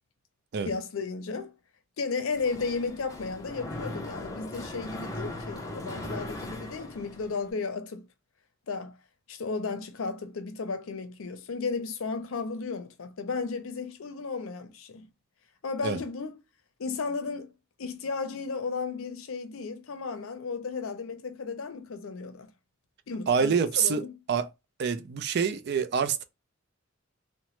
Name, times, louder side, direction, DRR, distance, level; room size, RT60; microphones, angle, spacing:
voice 1, 0.6-1.5 2.0-8.0 8.7-9.0 9.3-15.1 15.6-16.3 16.8-17.5 17.8-22.5 23.1-24.1, left 4 dB, 90° left, 0.5 m, -34 dB
Mechanisms, 2.3-7.5, left 1 dB, 15° left, 0.6 m, -39 dB
voice 2, 23.3-24.0 24.3-24.5 24.8-26.2, right 6 dB, 55° right, 0.4 m, -26 dB
2.9 x 2.1 x 3.0 m
head